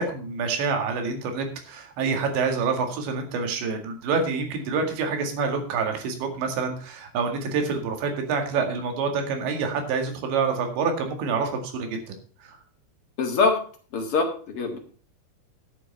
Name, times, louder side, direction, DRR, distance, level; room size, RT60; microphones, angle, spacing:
voice 1, 0.0-11.9 12.4-12.6, right 5 dB, 90° right, 4 dB, 4.4 m, -27 dB
voice 2, 13.2-13.6 13.9-14.8, left 4 dB, 50° left, 3 dB, 1.7 m, -23 dB
11.5 x 7.8 x 5.5 m, 0.41 s
omnidirectional pair, 5.0 m